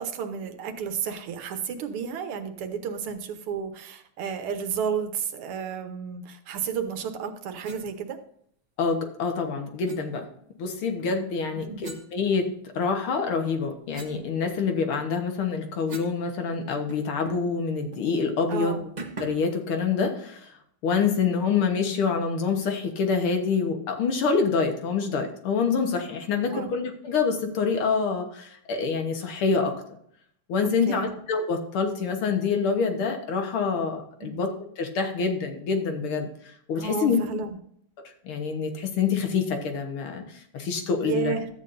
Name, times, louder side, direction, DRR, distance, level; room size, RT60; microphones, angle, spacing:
voice 1, 0.0-8.2 11.5-11.9 18.5-18.8 26.5-26.7 30.9-31.1 34.2-34.4 36.8-37.6 41.0-41.5, right 7 dB, 90° right, 8 dB, 1.9 m, -32 dB
sound 1, 7.6-7.9 9.8-10.0 11.8-12.8 13.3-16.2 16.5-16.6 16.9-17.6 17.9-18.1 19.0-19.5, right 3 dB, 40° right, 0.6 m, -42 dB
voice 2, 8.8-10.3 10.6-12.5 12.8-18.8 19.2-20.5 20.8-29.7 30.5-34.5 34.8-36.3 36.7-37.2 38.2-41.3, left 5 dB, 75° left, 5 dB, 2.1 m, -26 dB
12.5 x 8.5 x 2.6 m, 0.68 s
omnidirectional pair, 2.4 m